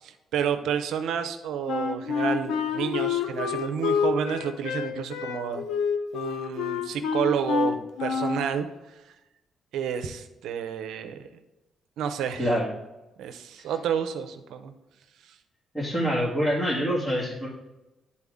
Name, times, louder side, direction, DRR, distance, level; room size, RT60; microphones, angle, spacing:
voice 1, 0.0-5.6 6.1-8.7 9.7-11.3 12.0-12.5 13.2-14.7, right 8 dB, 80° right, 8 dB, 0.7 m, -30 dB
Wind instrument woodwind instrument, 1.7-8.5, left 6 dB, 85° left, 0.7 m, -28 dB
voice 2, 15.7-17.5, equal, 15° left, -8 dB, 2.1 m, -25 dB
9.9 x 4.2 x 3.6 m, 1.0 s
cardioid pair, 90°, 0 cm